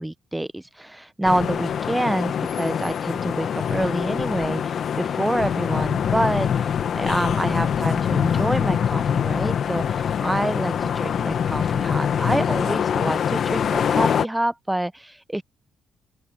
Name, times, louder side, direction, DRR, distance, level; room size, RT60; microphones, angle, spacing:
voice 1, 0.0-15.4, right 1 dB, 10° right, 0.8 m, -27 dB
sound 1, 1.2-14.3, left 8 dB, 60° left, 1.3 m, -24 dB
open air
cardioid pair, 90°, 0 cm